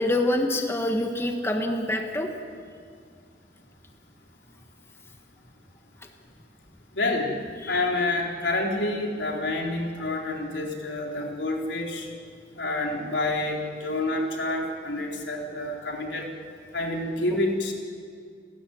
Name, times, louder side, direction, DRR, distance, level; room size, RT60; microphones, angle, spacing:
voice 1, 0.0-2.3, left 1 dB, 15° left, 3 dB, 1.5 m, -25 dB
voice 2, 6.9-7.3 7.7-12.1 12.6-16.3 16.7-17.7, left 2 dB, 80° left, 0 dB, 4.0 m, -28 dB
29.5 x 13.5 x 9.4 m, 2.2 s
head